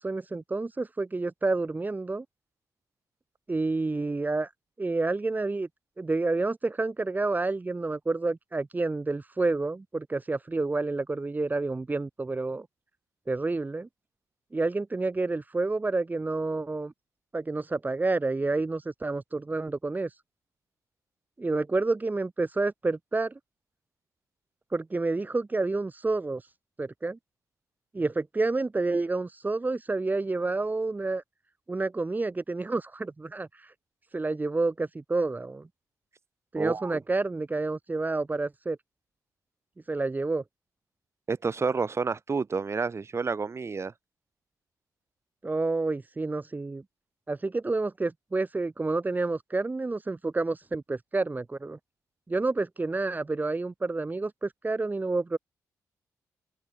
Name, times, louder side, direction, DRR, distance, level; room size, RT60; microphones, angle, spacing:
voice 1, 0.0-2.2 3.5-4.5 4.8-5.7 6.0-12.7 13.3-13.9 14.5-16.9 17.3-20.2 21.4-23.4 24.7-26.5 26.8-27.2 27.9-31.2 31.7-33.7 34.1-35.7 36.5-38.8 39.9-40.4 45.4-46.8 47.3-51.8 52.3-55.4, right 3 dB, 25° right, 3.0 m, -29 dB
voice 2, 36.5-37.0 41.3-43.9, right 4 dB, 40° right, 7.2 m, -30 dB
open air
cardioid pair, 65°, 7 cm